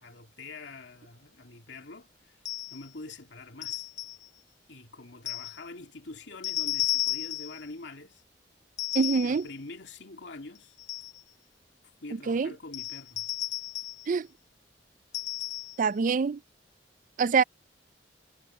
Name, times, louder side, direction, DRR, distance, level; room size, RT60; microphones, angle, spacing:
voice 1, 0.0-2.4 2.7-3.9 4.7-8.2 9.2-10.7 12.0-13.3, left 3 dB, 80° left, 2.4 m, -45 dB
sound 1, 2.4-2.9 3.6-4.3 5.3-5.6 6.4-7.6 8.8-9.4 10.5-11.2 12.7-14.1 15.1-15.8, left 15 dB, 40° left, 0.6 m, -33 dB
voice 2, 8.9-9.5 12.3-12.5 14.1-14.3 15.8-16.4 17.2-17.4, right 5 dB, 45° right, 0.4 m, -25 dB
head